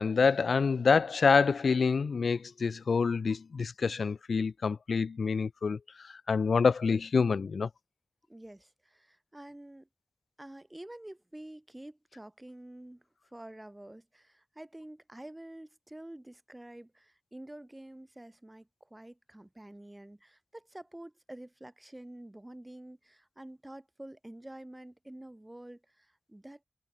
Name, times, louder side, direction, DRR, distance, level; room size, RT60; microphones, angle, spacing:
voice 1, 0.0-5.8 6.0-7.7, left 5 dB, 65° left, 0.4 m, -27 dB
voice 2, 8.3-9.9 10.4-13.0 13.3-26.6, right 1 dB, 15° right, 1.7 m, -48 dB
wide cardioid pair, 75°, 0 cm